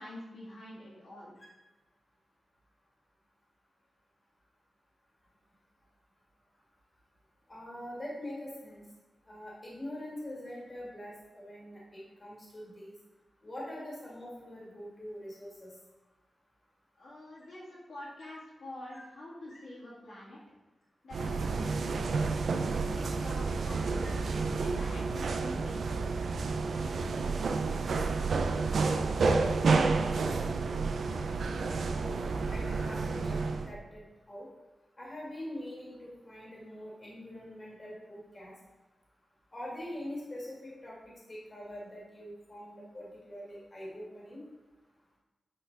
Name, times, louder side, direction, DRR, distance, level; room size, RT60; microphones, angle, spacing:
voice 1, 0.0-1.3 17.0-20.4 21.0-22.3 22.7-25.8, left 1 dB, 80° left, -7 dB, 2.4 m, -46 dB
voice 2, 7.5-8.8 9.3-12.9 13.4-15.7 18.9-19.0 19.5-19.6 24.0-24.1 31.9-32.2 32.5-33.4 33.7-34.5 35.0-38.5 39.5-41.0 41.3-44.4, left 1 dB, 25° left, -5 dB, 1.8 m, -43 dB
sound 1, 21.1-33.7, right 4 dB, 70° right, 0.4 m, -30 dB
8.4 x 4.2 x 3.9 m, 1.1 s
wide cardioid pair, 165°, 0 cm